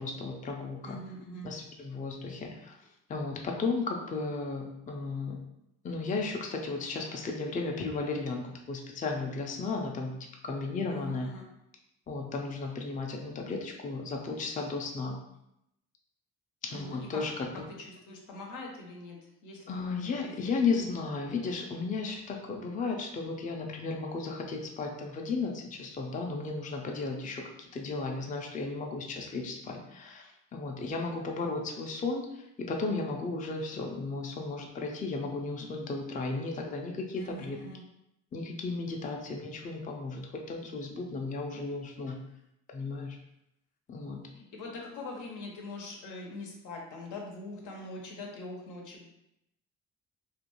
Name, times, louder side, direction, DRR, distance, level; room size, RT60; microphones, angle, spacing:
voice 1, 0.0-1.0 1.4-2.8 3.1-5.4 5.8-11.3 12.1-15.2 16.6-17.6 19.7-37.6 38.3-42.2 42.7-43.2 43.9-44.2, left 3 dB, 25° left, 1 dB, 0.4 m, -34 dB
voice 2, 0.8-1.5 10.9-11.5 16.7-17.2 18.1-19.2 19.4-19.6 19.9-20.5 37.2-37.8 44.3-49.0, left 2 dB, 85° left, 0 dB, 0.7 m, -43 dB
2.5 x 2.2 x 2.9 m, 0.82 s
cardioid pair, 90°, 30 cm